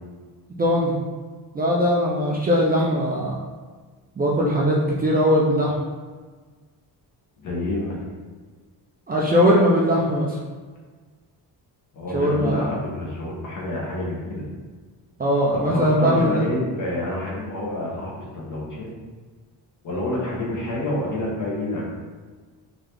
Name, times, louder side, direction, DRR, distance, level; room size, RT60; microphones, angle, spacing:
voice 1, 0.6-0.9 1.5-3.4 4.2-5.7 9.1-10.4 12.1-12.7 15.2-16.4, equal, 25° right, -4 dB, 0.4 m, -20 dB
voice 2, 7.4-7.9 11.9-14.4 15.5-18.9 19.8-21.8, left 1 dB, 50° left, -4 dB, 1.1 m, -28 dB
3.8 x 2.8 x 3.3 m, 1.5 s
wide cardioid pair, 165°, 41 cm